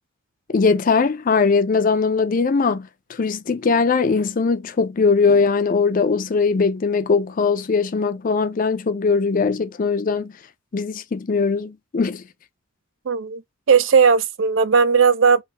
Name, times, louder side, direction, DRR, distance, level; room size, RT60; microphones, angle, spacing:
voice 1, 0.5-10.3 10.7-12.2, left 4 dB, 40° left, 0.4 m, -20 dB
voice 2, 13.1-13.4 13.7-15.4, right 6 dB, 70° right, 0.5 m, -16 dB
3.4 x 2.7 x 4.0 m
head